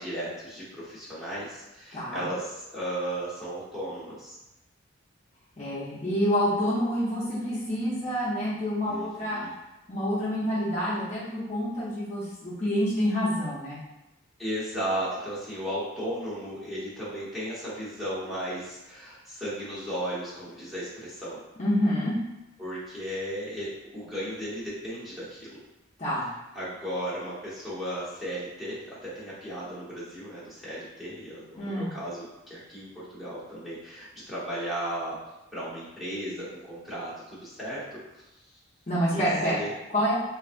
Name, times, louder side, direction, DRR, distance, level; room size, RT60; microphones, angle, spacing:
voice 1, 0.0-4.4 8.8-9.5 14.4-21.4 22.6-25.6 26.5-35.2 35.5-37.8 38.1-38.5 39.1-39.7, equal, ahead, -11 dB, 1.0 m, -35 dB
voice 2, 1.9-2.2 5.6-9.4 9.9-13.8 21.6-22.1 26.0-26.2 31.6-31.9 38.9-39.6 39.9-40.2, equal, 35° left, -9 dB, 0.7 m, -27 dB
3.3 x 2.5 x 2.5 m, 0.97 s
head